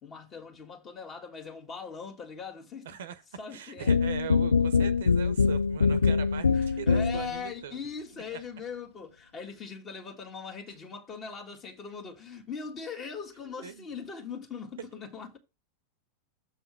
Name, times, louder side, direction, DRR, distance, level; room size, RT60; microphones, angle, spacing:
voice 1, 0.0-3.0 3.4-3.9 6.5-15.4, left 5 dB, 25° left, 1.7 m, -41 dB
voice 2, 2.8-3.2 3.5-7.8 13.6-13.8, right 8 dB, 60° right, 0.9 m, -40 dB
sound 1, 3.9-7.4, left 5 dB, 75° left, 0.3 m, -24 dB
7.4 x 3.5 x 5.9 m
figure-of-eight pair, 90°, 0 cm